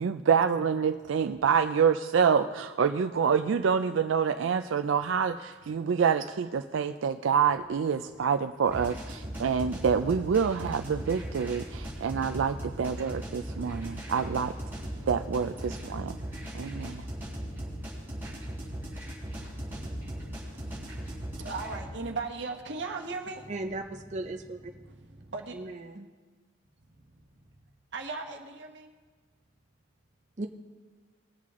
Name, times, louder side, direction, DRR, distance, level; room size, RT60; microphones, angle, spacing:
voice 1, 0.0-14.5 15.1-16.2 16.5-17.0, right 6 dB, 85° right, 8 dB, 0.4 m, -27 dB
sound 1, 8.6-21.8, equal, 10° right, 3.9 m, -38 dB
voice 2, 13.2-13.5 17.0-17.4 18.3-18.4 18.7-25.7 26.8-27.6 27.9-28.9, right 3 dB, 65° right, 3 dB, 1.2 m, -41 dB
voice 3, 23.5-24.6 25.6-26.1 30.4-30.5, right 2 dB, 40° right, 4 dB, 0.6 m, -36 dB
20.0 x 7.5 x 3.7 m, 1.4 s
head